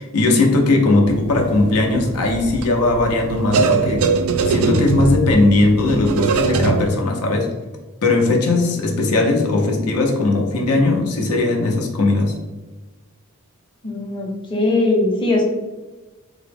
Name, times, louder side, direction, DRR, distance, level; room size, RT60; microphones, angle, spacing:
voice 1, 0.0-4.1 4.5-7.5 8.0-12.3, left 2 dB, 85° left, 1 dB, 0.6 m, -18 dB
sound 1, 1.1-6.9, right 4 dB, 70° right, 0.3 m, -22 dB
voice 2, 13.8-15.4, left 2 dB, 20° left, -2 dB, 0.6 m, -20 dB
3.6 x 2.0 x 3.3 m, 1.2 s
head